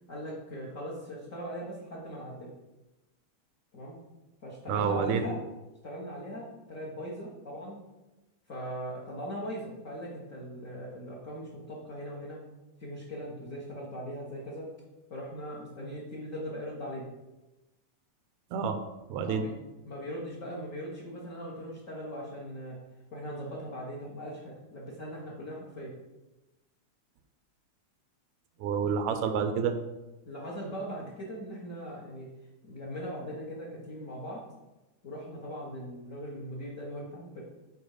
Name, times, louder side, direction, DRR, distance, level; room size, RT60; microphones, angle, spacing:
voice 1, 0.1-2.5 3.7-4.0 4.4-5.4 5.8-7.8 8.5-12.4 12.8-14.7 15.1-17.1 19.2-19.6 19.9-22.8 23.1-25.9 30.2-32.3 32.6-34.4 35.0-37.4, equal, 45° left, -5 dB, 1.0 m, -39 dB
voice 2, 4.7-5.2 18.5-18.8 19.1-19.4 28.6-29.7, right 6 dB, 80° right, 8 dB, 1.9 m, -28 dB
7.9 x 4.4 x 4.9 m, 1.0 s
omnidirectional pair, 3.3 m